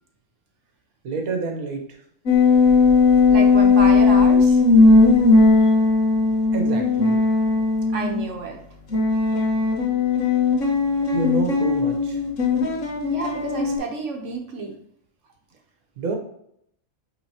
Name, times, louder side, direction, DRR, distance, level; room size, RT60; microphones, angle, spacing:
voice 1, 1.0-1.8 6.5-7.2 11.1-12.2 16.0-16.2, right 4 dB, 85° right, 3 dB, 1.5 m, -28 dB
sound 1, 2.3-8.3 8.9-13.8, left 4 dB, 60° left, 1.6 m, -17 dB
voice 2, 3.3-4.6 7.9-8.6 13.0-14.7, right 2 dB, 60° right, 2 dB, 1.4 m, -29 dB
9.0 x 4.0 x 2.9 m, 0.71 s
omnidirectional pair, 1.5 m